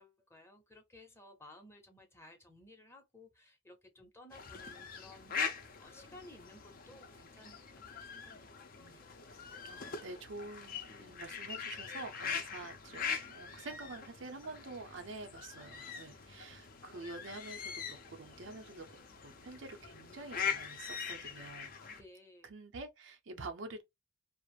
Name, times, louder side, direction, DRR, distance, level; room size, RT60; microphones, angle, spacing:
voice 1, 0.0-7.6 7.9-9.2 21.8-22.5, left 1 dB, 15° left, 0.7 m, -57 dB
sound 1, 4.3-22.0, left 6 dB, 50° left, 0.5 m, -42 dB
voice 2, 9.6-22.0 22.4-23.8, right 3 dB, 85° right, 0.6 m, -48 dB
2.4 x 2.0 x 3.0 m
head